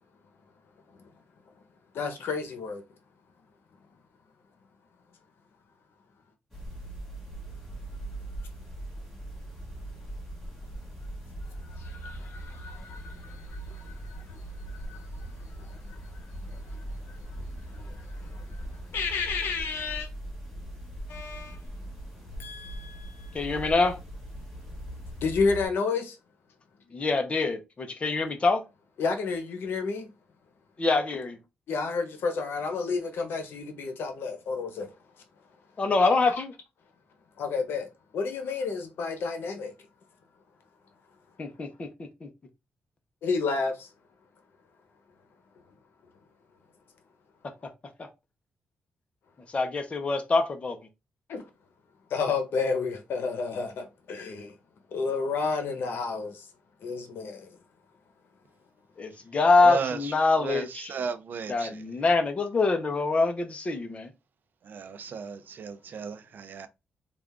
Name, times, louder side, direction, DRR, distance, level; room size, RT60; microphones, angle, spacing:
voice 1, 1.9-2.8 11.6-14.4 14.7-16.0 16.4-17.5 17.7-18.6 18.9-20.1 21.1-21.6 22.4-23.4 25.2-26.2 29.0-30.1 31.7-34.9 36.0-36.1 37.4-37.9 38.1-39.7 43.2-43.9 51.3-51.4 52.1-54.5 54.9-56.4 56.8-57.5, left 4 dB, 80° left, 0.9 m, -31 dB
sound 1, 6.5-25.7, right 1 dB, 5° left, 2.0 m, -40 dB
voice 2, 23.3-24.0 26.9-28.6 30.8-31.4 35.8-36.5 41.4-41.9 42.2-42.3 48.0-48.1 49.5-50.8 59.0-60.9 61.5-64.1, left 3 dB, 35° left, 0.7 m, -25 dB
voice 3, 59.6-60.1 60.4-61.8 64.6-66.7, right 6 dB, 55° right, 0.5 m, -35 dB
3.4 x 2.4 x 3.5 m
wide cardioid pair, 130°, 4 cm